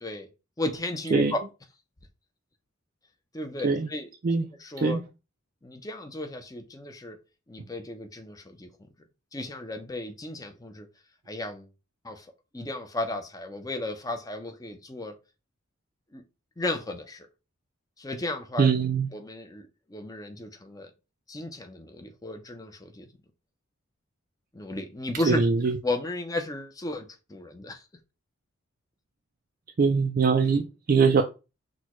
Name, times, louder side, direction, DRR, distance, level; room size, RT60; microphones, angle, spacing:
voice 1, 0.6-1.4 3.3-4.1 4.6-5.0 5.6-7.2 7.5-8.7 9.3-10.9 11.3-11.7 12.0-15.1 16.1-16.2 16.6-17.3 18.0-18.7 19.1-20.9 21.3-23.1 24.5-25.4 25.8-27.8, left 2 dB, 15° left, 0.6 m, -34 dB
voice 2, 18.6-19.1 25.3-25.8 29.8-31.2, right 5 dB, 45° right, 0.4 m, -22 dB
6.1 x 2.3 x 3.0 m
head